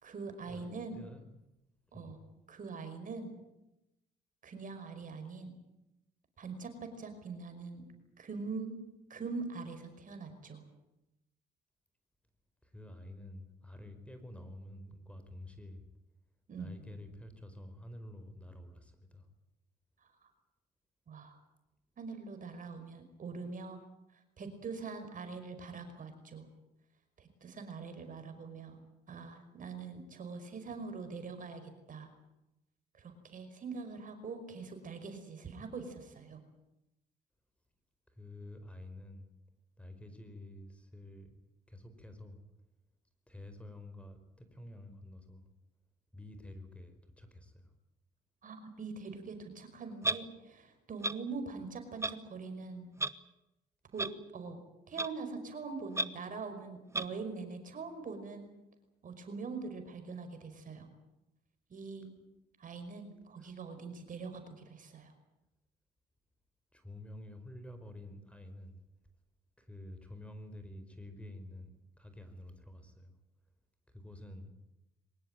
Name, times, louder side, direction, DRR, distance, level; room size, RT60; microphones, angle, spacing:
voice 1, 0.0-1.0 1.9-2.2 2.5-3.3 4.4-5.6 6.4-7.8 8.2-8.8 9.1-10.6 16.5-16.7 20.2-20.3 21.1-21.4 22.0-23.8 24.4-26.5 27.2-28.8 29.1-31.6 31.9-32.1 33.0-36.4 48.4-52.9 53.9-54.1 54.3-54.6 54.9-58.5 59.0-60.9 61.7-62.1 62.6-65.1, right 4 dB, 50° right, 8 dB, 5.3 m, -43 dB
voice 2, 0.9-1.3 1.9-2.2 12.6-15.8 16.6-19.3 30.6-30.8 38.1-39.3 39.8-41.3 41.7-42.4 43.3-45.4 46.1-47.7 63.4-63.5 66.7-68.8 69.6-73.1 73.9-74.6, left 1 dB, 5° left, 9 dB, 4.9 m, -49 dB
Clock, 50.0-50.2 51.0-51.1 52.0-52.1 53.0-53.1 54.0-54.1 55.0-55.1 55.9-56.0 56.9-57.0, right 2 dB, 15° right, 1.2 m, -31 dB
23.5 x 19.5 x 9.1 m, 0.92 s
supercardioid pair, 70°, 18 cm